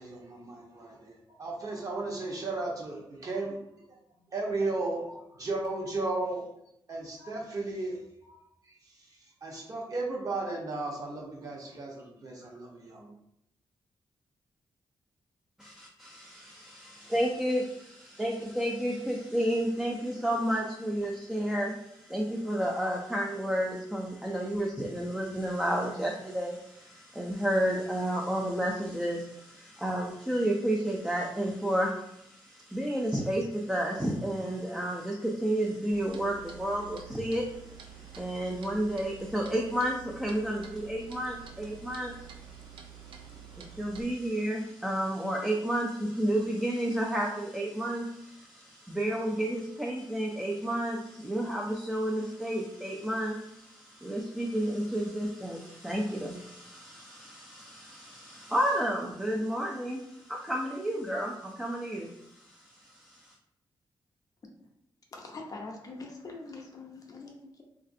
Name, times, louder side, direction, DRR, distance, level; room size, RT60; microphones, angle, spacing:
voice 1, 0.0-4.0 4.3-6.5 6.9-13.1, right 2 dB, 45° right, -3 dB, 0.9 m, -35 dB
voice 2, 15.6-63.3, right 1 dB, 5° right, -1 dB, 0.4 m, -31 dB
Clock, 35.9-44.0, right 7 dB, 90° right, 0.4 m, -48 dB
voice 3, 65.1-67.6, left 3 dB, 45° left, 1 dB, 0.6 m, -43 dB
3.1 x 2.5 x 2.5 m, 0.79 s
cardioid pair, 105°, 8 cm